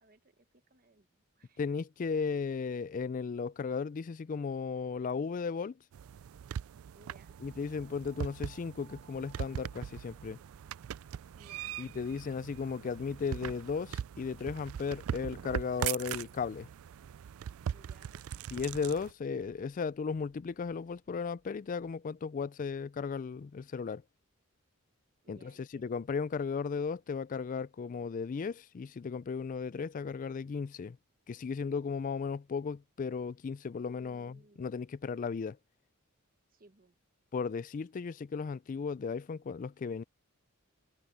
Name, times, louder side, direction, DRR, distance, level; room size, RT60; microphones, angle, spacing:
voice 1, 0.0-1.6 6.9-7.4 11.3-11.8 17.7-18.2 25.2-26.0 33.9-34.7 36.5-37.0, right 2 dB, 40° right, 1.2 m, -62 dB
voice 2, 1.6-5.8 7.4-10.4 11.8-16.7 18.5-24.0 25.3-31.0 31.3-35.6 37.3-40.0, left 5 dB, 35° left, 0.3 m, -35 dB
sound 1, 5.9-19.1, right 9 dB, 75° right, 0.3 m, -41 dB
sound 2, 13.4-22.0, equal, ahead, 3.2 m, -72 dB
head